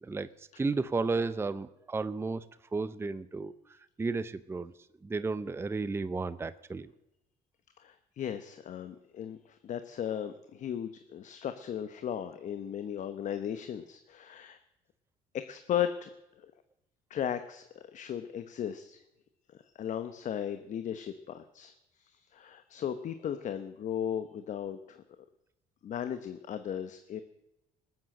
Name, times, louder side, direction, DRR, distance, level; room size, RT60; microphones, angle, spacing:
voice 1, 0.0-2.4 2.7-3.5 4.0-4.7 5.0-6.9, right 3 dB, 15° right, 14 dB, 0.6 m, -33 dB
voice 2, 7.8-14.6 15.3-16.1 17.1-17.6 17.9-19.0 19.8-21.7 22.0-25.0 25.8-27.2, left 9 dB, 55° left, 10 dB, 1.0 m, -36 dB
19.5 x 7.8 x 7.7 m, 0.92 s
cardioid pair, 100°, 16 cm